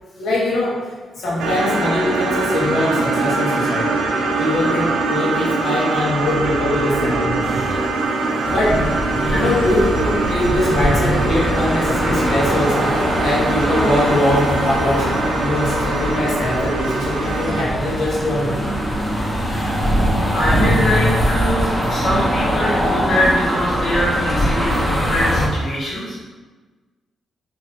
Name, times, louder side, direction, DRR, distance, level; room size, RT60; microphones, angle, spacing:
voice 1, 0.2-4.1 4.4-7.6 8.5-8.8 9.3-15.1 15.4-18.7, left 1 dB, 70° left, -5 dB, 1.2 m, -22 dB
sound 1, 1.4-17.7, right 3 dB, 80° right, 0.5 m, -23 dB
sound 2, 6.2-8.1 9.2-12.1, right 3 dB, 15° right, 1.2 m, -33 dB
sound 3, 8.4-25.5, equal, 10° left, 0.9 m, -22 dB
voice 2, 20.3-26.2, left 1 dB, 55° left, -9 dB, 1.4 m, -22 dB
4.0 x 2.8 x 2.8 m, 1.3 s
cardioid pair, 70°, 0 cm